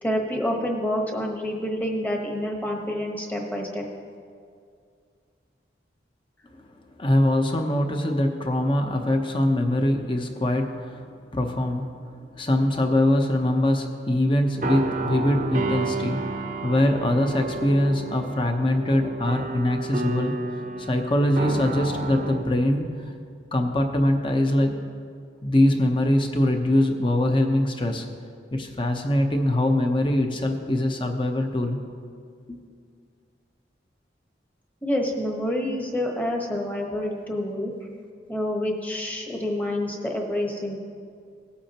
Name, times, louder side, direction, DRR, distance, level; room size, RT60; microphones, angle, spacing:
voice 1, 0.0-3.8 34.8-37.7 38.3-40.8, left 1 dB, 10° left, 0 dB, 1.1 m, -28 dB
voice 2, 7.0-20.4 20.8-22.9 23.5-24.8 25.4-28.1 28.5-31.8 32.5-32.6, left 1 dB, 30° left, 4 dB, 0.8 m, -23 dB
sound 1, 14.5-23.0, right 3 dB, 45° right, 0.7 m, -31 dB
18.5 x 8.4 x 2.9 m, 2.2 s
head